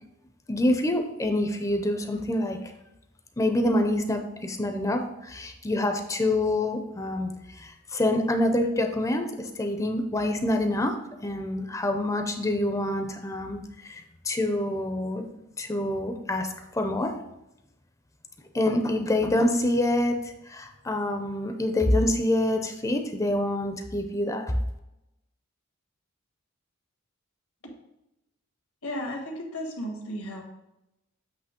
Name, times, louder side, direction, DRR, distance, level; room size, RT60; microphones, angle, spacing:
voice 1, 0.5-2.6 3.4-15.3 15.6-17.1 18.5-20.2 20.5-24.5, left 1 dB, 15° left, 5 dB, 0.5 m, -26 dB
voice 2, 28.8-30.4, equal, 90° left, 1 dB, 1.6 m, -34 dB
8.1 x 3.1 x 5.1 m, 0.90 s
head